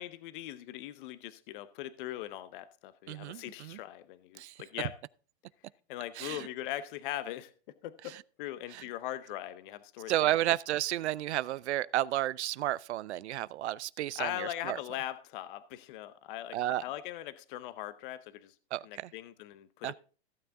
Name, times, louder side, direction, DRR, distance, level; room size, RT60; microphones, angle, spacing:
voice 1, 0.0-4.9 5.9-7.5 7.8-10.4 14.2-18.5 18.8-19.9, left 14 dB, 50° left, 0.8 m, -40 dB
voice 2, 3.1-3.8 4.4-4.5 6.2-6.5 8.1-8.2 8.7-8.8 10.1-14.8 16.5-16.8 18.7-19.1 19.8-19.9, right 14 dB, 80° right, 0.5 m, -32 dB
15.0 x 6.9 x 3.6 m
hypercardioid pair, 135°, 33 cm